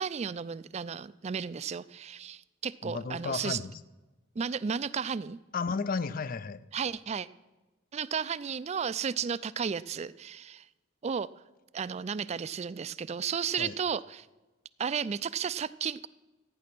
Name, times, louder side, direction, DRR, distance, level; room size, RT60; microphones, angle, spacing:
voice 1, 0.0-3.6 4.4-5.4 6.7-7.3 7.9-10.6 11.0-11.3 11.7-14.3 14.8-16.1, right 7 dB, 35° right, 17 dB, 0.3 m, -33 dB
voice 2, 2.8-3.8 5.5-6.7 13.6-13.8, left 4 dB, 45° left, 16 dB, 0.5 m, -33 dB
14.5 x 9.4 x 6.0 m, 1.1 s
head